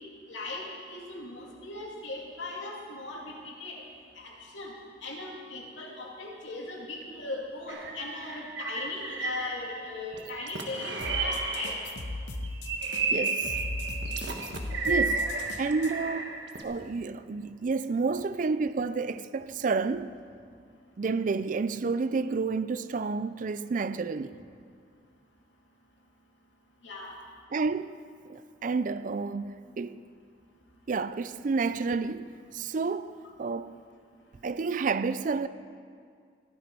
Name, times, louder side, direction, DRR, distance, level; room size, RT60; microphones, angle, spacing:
voice 1, 0.3-0.6 0.9-3.8 4.1-4.7 5.0-11.8 26.8-27.1, left 2 dB, 90° left, 2.5 m, -38 dB
sound 1, 7.7-9.8 10.1-12.0 12.4-16.6, right 4 dB, 65° right, 1.3 m, -32 dB
sound 2, 11.0-15.9, left 2 dB, 70° left, 0.9 m, -37 dB
voice 2, 13.1-13.5 14.9-16.4 16.6-20.2 21.0-24.4 27.5-30.0 30.9-33.8 34.4-35.5, right 4 dB, 45° right, 0.4 m, -30 dB
15.5 x 12.0 x 4.6 m
head